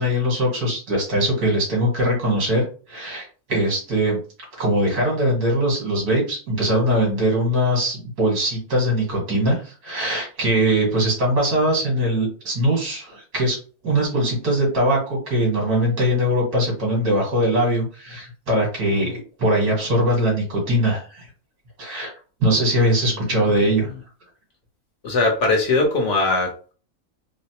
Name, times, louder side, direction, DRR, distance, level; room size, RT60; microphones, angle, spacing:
voice 1, 0.0-4.2 4.6-13.6 13.8-21.3 21.8-22.1 22.4-23.9, right 1 dB, 85° right, -3 dB, 2.2 m, -21 dB
voice 2, 25.0-26.7, left 3 dB, 55° left, 1 dB, 1.1 m, -20 dB
3.9 x 2.1 x 2.8 m, 0.37 s
omnidirectional pair, 1.6 m